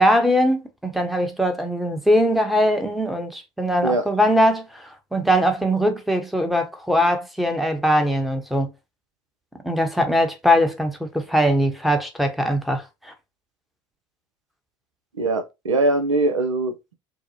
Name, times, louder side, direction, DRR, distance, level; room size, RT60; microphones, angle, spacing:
voice 1, 0.0-8.7 9.6-13.1, equal, ahead, 0.8 m, -21 dB
voice 2, 15.2-16.9, right 2 dB, 90° right, 0.5 m, -22 dB
4.6 x 2.1 x 2.7 m
hypercardioid pair, 70°, 16 cm